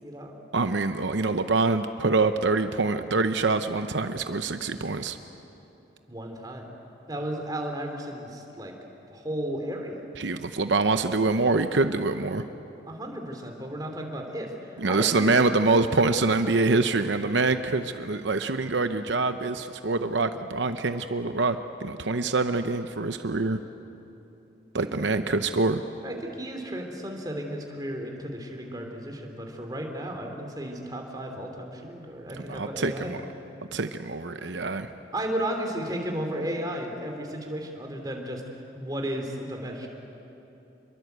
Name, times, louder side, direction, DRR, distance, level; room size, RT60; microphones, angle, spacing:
voice 1, 0.0-0.4 6.1-6.6 7.1-8.7 9.1-10.1 12.8-15.3 24.8-25.0 26.0-33.3 35.1-39.9, right 1 dB, 20° right, 2 dB, 3.2 m, -34 dB
voice 2, 0.5-5.2 10.2-12.4 14.8-23.6 24.7-25.8 32.3-33.2 33.7-34.9, right 3 dB, 75° right, 8 dB, 0.8 m, -25 dB
28.0 x 22.5 x 8.2 m, 3.0 s
head